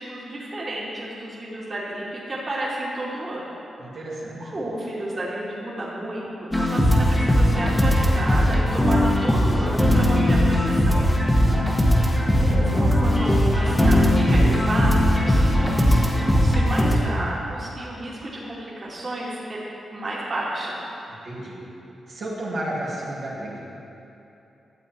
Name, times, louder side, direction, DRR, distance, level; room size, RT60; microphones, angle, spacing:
voice 1, 0.0-3.5 4.5-11.0 12.2-19.6 19.9-20.8, right 1 dB, 40° right, -7 dB, 2.4 m, -31 dB
voice 2, 3.8-4.6 11.4-12.3 21.1-21.6 22.1-23.7, right 1 dB, 65° right, -7 dB, 2.5 m, -33 dB
sound 1, 6.5-17.0, equal, 10° left, 1.5 m, -19 dB
12.0 x 7.5 x 4.5 m, 2.9 s
supercardioid pair, 55°, 0 cm